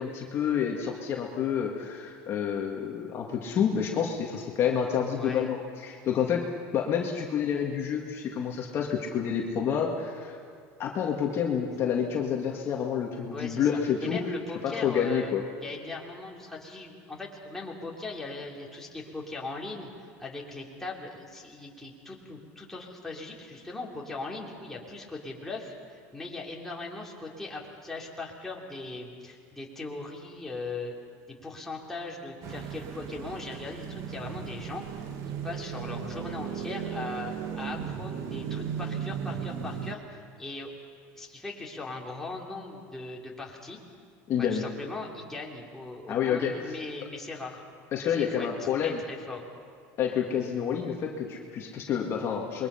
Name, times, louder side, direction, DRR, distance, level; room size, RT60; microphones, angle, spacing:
voice 1, 0.0-6.5 6.7-10.4 10.8-14.2 14.6-15.4 44.3-44.7 46.1-46.8 47.9-49.0 50.0-52.7, left 8 dB, 40° left, 0 dB, 2.0 m, -28 dB
voice 2, 5.2-5.5 13.3-15.3 15.6-19.9 20.2-30.9 31.3-40.7 41.2-43.8 44.4-47.6 48.1-49.4, left 3 dB, 5° left, -3 dB, 3.1 m, -39 dB
sound 1, 32.4-40.0, right 8 dB, 50° right, 1.7 m, -36 dB
27.5 x 22.0 x 5.8 m, 2.2 s
supercardioid pair, 140°, 7 cm